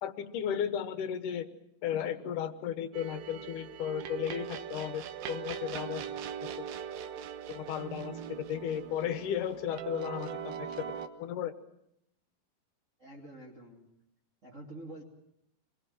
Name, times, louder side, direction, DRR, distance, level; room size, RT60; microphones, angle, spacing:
voice 1, 0.0-1.5 1.8-5.0 5.3-6.1 6.4-6.7 7.5-11.5, left 9 dB, 70° left, 11 dB, 2.6 m, -35 dB
sound 1, 2.9-11.1, right 8 dB, 80° right, 2.9 m, -41 dB
voice 2, 5.9-6.2 13.0-14.0 14.4-15.0, right 1 dB, 20° right, -3 dB, 2.7 m, -48 dB
26.0 x 22.0 x 7.6 m, 0.78 s
omnidirectional pair, 4.1 m